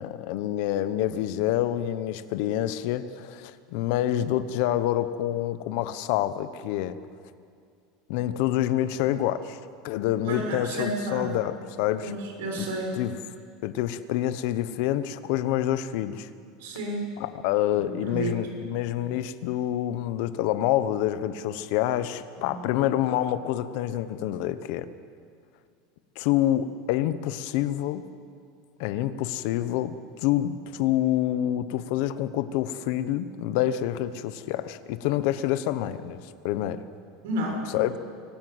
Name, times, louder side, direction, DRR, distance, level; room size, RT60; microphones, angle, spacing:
voice 1, 0.0-7.0 8.1-9.6 9.8-12.1 12.6-12.7 13.0-13.1 13.6-16.3 17.2-24.9 26.2-28.0 28.8-36.8 37.7-38.0, left 12 dB, 55° left, 13 dB, 1.0 m, -27 dB
voice 2, 10.2-11.3 12.0-12.9 16.6-17.1 17.8-18.6 22.4-22.6 37.2-37.6, right 1 dB, 85° right, 1 dB, 6.6 m, -31 dB
25.0 x 15.0 x 8.0 m, 2.3 s
supercardioid pair, 175°, 0 cm